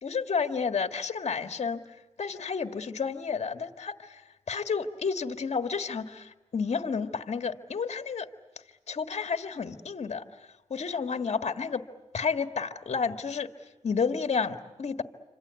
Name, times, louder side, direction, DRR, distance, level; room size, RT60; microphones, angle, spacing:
voice 1, 0.0-1.8 2.2-8.3 8.9-10.2 10.7-11.8 12.1-13.5 13.8-15.0, left 5 dB, 60° left, 7 dB, 1.8 m, -31 dB
28.0 x 25.5 x 8.2 m, 1.1 s
cardioid pair, 75°, 12 cm